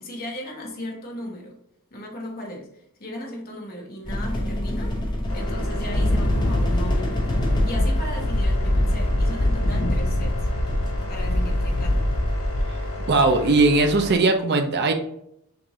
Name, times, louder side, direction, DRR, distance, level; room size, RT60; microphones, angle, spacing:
voice 1, 0.0-1.6 1.9-2.7 3.0-5.0 5.3-10.5 11.1-12.1, left 1 dB, 40° left, 0 dB, 1.1 m, -36 dB
sound 1, 4.0-13.6, left 1 dB, 20° left, 0.9 m, -30 dB
sound 2, 5.3-14.2, left 2 dB, 65° left, 1.3 m, -34 dB
Wind, 5.9-13.0, left 1 dB, 85° left, 0.7 m, -24 dB
voice 2, 13.0-14.9, right 3 dB, 50° right, 5 dB, 0.5 m, -19 dB
5.9 x 2.6 x 3.1 m, 0.75 s
head